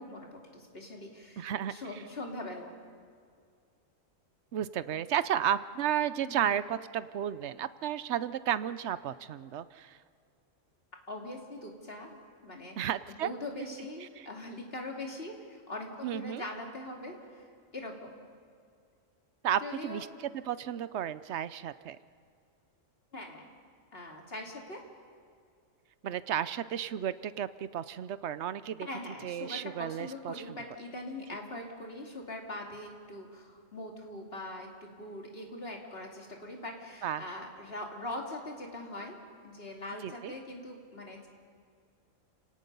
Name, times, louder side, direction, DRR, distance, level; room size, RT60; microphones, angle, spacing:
voice 1, 0.0-2.8 6.2-6.4 11.1-12.8 13.2-18.2 19.6-20.1 23.1-23.5 23.9-24.8 28.8-41.3, left 1 dB, 45° left, 0 dB, 2.9 m, -42 dB
voice 2, 1.4-1.7 4.5-10.0 12.8-13.3 14.2-14.3 16.0-16.4 19.4-20.1 20.5-22.0 26.0-28.9 29.2-30.6 37.0-37.3 40.0-40.3, right 10 dB, 65° right, 15 dB, 0.9 m, -33 dB
29.5 x 18.0 x 5.5 m, 2.2 s
omnidirectional pair, 1.3 m